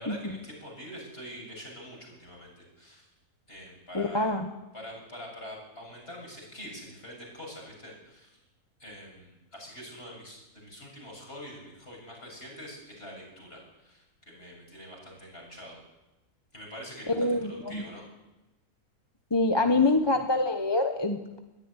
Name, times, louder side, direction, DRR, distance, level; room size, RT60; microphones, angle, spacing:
voice 1, 0.0-3.1 3.5-4.4 4.7-8.3 8.8-15.8 16.5-18.0, equal, 40° left, -1 dB, 7.8 m, -45 dB
voice 2, 3.9-4.5 17.1-17.8 19.3-21.4, left 2 dB, 20° left, 5 dB, 1.1 m, -25 dB
21.0 x 14.0 x 9.9 m, 1.0 s
omnidirectional pair, 1.6 m